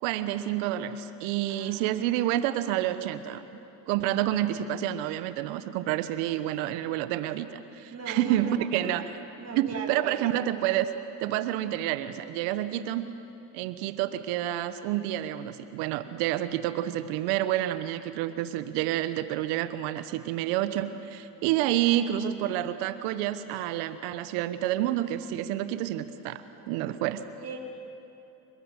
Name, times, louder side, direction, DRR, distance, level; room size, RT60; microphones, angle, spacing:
voice 1, 0.0-3.5 3.9-9.1 9.5-10.9 11.2-13.1 13.5-27.2, right 13 dB, 70° right, 12 dB, 1.2 m, -29 dB
voice 2, 1.5-2.1 4.0-4.1 7.9-9.1 9.4-10.3 27.4-27.6, right 3 dB, 30° right, 0 dB, 4.2 m, -39 dB
29.5 x 19.5 x 7.6 m, 2.8 s
hypercardioid pair, 65°, 48 cm